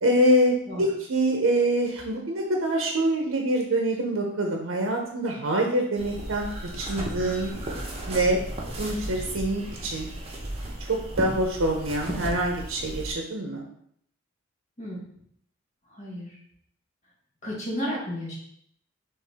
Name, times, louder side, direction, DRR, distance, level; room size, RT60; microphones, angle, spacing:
voice 1, 0.0-6.5 6.8-7.6 8.1-8.4 8.8-10.1 10.9-13.7, right 1 dB, 75° right, 1 dB, 0.7 m, -25 dB
sound 1, 5.9-13.1, right 1 dB, 30° right, 0.9 m, -35 dB
voice 2, 15.9-16.4 17.4-18.4, equal, 35° left, -5 dB, 1.4 m, -33 dB
4.6 x 3.1 x 3.4 m, 0.68 s
head